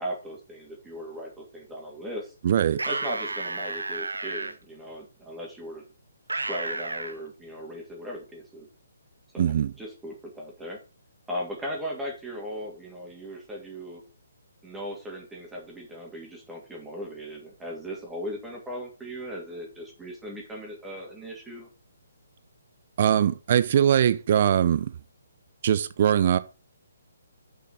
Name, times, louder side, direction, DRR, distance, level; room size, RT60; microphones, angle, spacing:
voice 1, 0.0-2.3 2.9-5.8 6.3-8.7 9.3-10.8 11.3-14.0 14.6-21.7, equal, 5° right, 2.6 m, -38 dB
voice 2, 2.4-2.8 9.4-9.7 23.0-24.9 25.6-26.4, right 9 dB, 45° right, 0.9 m, -21 dB
sound 1, 2.7-4.5 6.3-7.1, right 2 dB, 85° right, 1.1 m, -31 dB
7.2 x 5.6 x 6.5 m
figure-of-eight pair, 140°, 0 cm